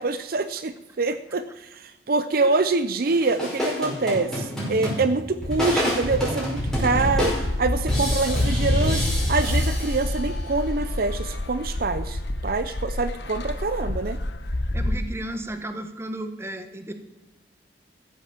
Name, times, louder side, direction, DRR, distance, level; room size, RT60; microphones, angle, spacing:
voice 1, 0.0-14.2, right 3 dB, 60° right, 12 dB, 0.7 m, -25 dB
sound 1, 3.1-10.5, equal, 5° left, 5.3 m, -28 dB
sound 2, 6.7-15.0, left 1 dB, 75° left, 1.1 m, -27 dB
voice 2, 14.7-16.9, right 1 dB, 15° right, 8 dB, 1.3 m, -34 dB
14.0 x 8.2 x 7.3 m, 0.96 s
head